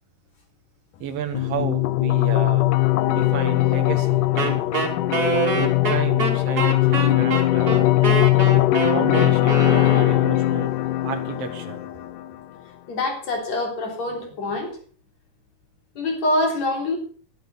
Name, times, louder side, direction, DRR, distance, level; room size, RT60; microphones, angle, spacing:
voice 1, 1.0-2.7 3.1-4.7 5.5-8.2 8.9-10.8 11.0-11.8, right 7 dB, 55° right, 6 dB, 2.5 m, -32 dB
sound 1, 1.3-12.4, left 17 dB, 80° left, 2.3 m, -20 dB
Wind instrument woodwind instrument, 4.4-10.4, right 4 dB, 30° right, 2.8 m, -25 dB
voice 2, 12.9-14.8 16.0-17.0, left 2 dB, 55° left, 2 dB, 4.8 m, -25 dB
12.0 x 11.5 x 5.5 m, 0.43 s
omnidirectional pair, 3.6 m